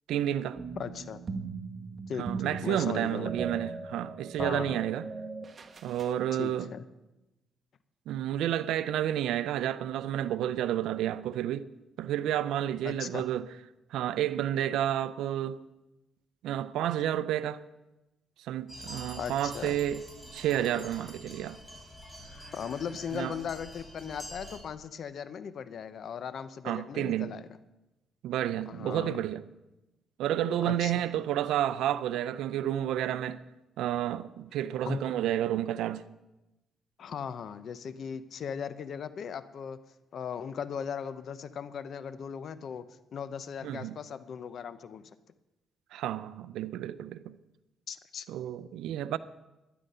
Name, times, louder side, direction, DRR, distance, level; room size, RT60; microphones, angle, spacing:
voice 1, 0.1-0.6 2.2-5.1 5.8-6.7 8.1-11.7 12.0-13.4 13.9-15.6 16.4-17.6 18.4-20.0 20.3-21.6 23.1-23.3 26.6-27.3 28.2-29.4 30.2-33.4 33.8-36.0 43.6-44.0 45.9-47.4 48.3-49.2, right 11 dB, 85° right, 0.5 m, -30 dB
sound 1, 0.6-6.2, right 4 dB, 40° right, 1.2 m, -39 dB
voice 2, 0.8-1.2 2.1-3.5 4.4-4.8 6.4-6.9 12.8-13.2 19.2-19.8 22.5-27.5 28.7-29.1 30.6-30.9 34.9-35.0 37.0-39.8 40.1-45.0 47.9-48.2, left 7 dB, 60° left, 0.8 m, -38 dB
sound 2, 18.7-24.6, equal, 10° left, 5.5 m, -46 dB
12.5 x 11.0 x 5.5 m
cardioid pair, 90°, 0 cm